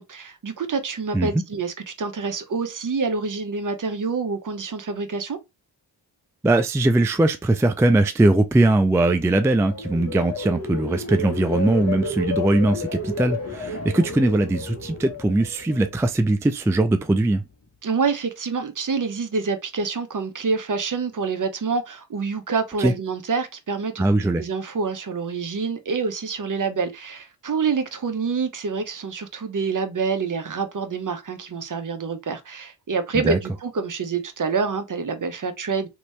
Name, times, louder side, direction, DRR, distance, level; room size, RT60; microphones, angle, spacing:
voice 1, 0.0-5.4 17.8-24.1 24.4-35.9, right 5 dB, 45° right, 0.8 m, -27 dB
voice 2, 6.4-17.4 22.8-22.9 24.0-24.4 33.2-33.4, right 2 dB, 5° right, 0.3 m, -20 dB
sound 1, 9.1-16.2 16.6-17.0, left 3 dB, 35° left, 1.1 m, -31 dB
3.0 x 2.7 x 3.2 m
cardioid pair, 55°, 43 cm